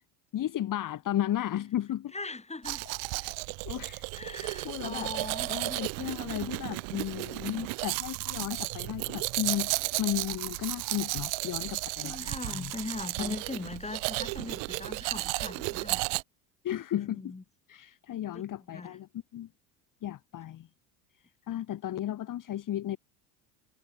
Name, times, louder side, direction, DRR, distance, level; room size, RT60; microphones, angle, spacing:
voice 1, 0.3-2.1 3.2-3.3 3.7-5.1 5.5-9.7 10.0-12.7 13.2-13.4 16.6-17.3 17.7-19.5 20.0-20.7 21.5-23.0, left 12 dB, 40° left, 1.8 m, -34 dB
voice 2, 2.1-2.8 4.1-6.1 12.0-16.0 17.1-17.4 18.3-18.4 18.7-19.0, left 3 dB, 15° left, 5.4 m, -40 dB
Domestic sounds home sounds, 2.6-16.2, right 33 dB, 65° right, 1.7 m, -34 dB
hypercardioid pair, 80°, 50 cm